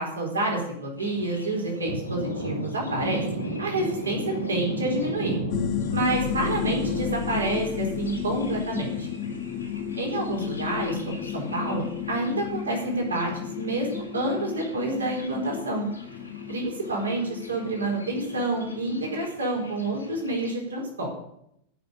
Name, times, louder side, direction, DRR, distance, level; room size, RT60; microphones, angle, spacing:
voice 1, 0.0-5.4 5.9-9.1 10.0-13.3 13.6-15.9 16.5-21.1, right 2 dB, 75° right, -1 dB, 4.2 m, -28 dB
Thunder, 1.0-20.5, right 1 dB, 85° left, 3.3 m, -36 dB
sound 1, 5.5-19.3, left 10 dB, 40° left, 0.7 m, -33 dB
14.0 x 6.5 x 9.9 m, 0.77 s
figure-of-eight pair, 90°, 0 cm